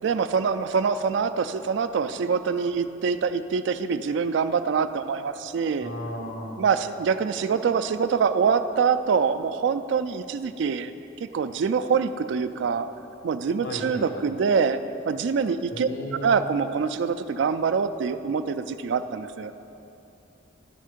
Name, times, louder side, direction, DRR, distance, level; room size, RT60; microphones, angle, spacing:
voice 1, 0.0-5.9 6.6-10.9 11.3-12.9 13.2-14.8 15.1-15.9 16.2-19.5, right 6 dB, 65° right, 10 dB, 0.3 m, -25 dB
voice 2, 5.8-6.6 13.6-14.2 15.7-16.4, left 1 dB, 60° left, -1 dB, 1.2 m, -35 dB
12.0 x 4.5 x 5.0 m, 2.8 s
head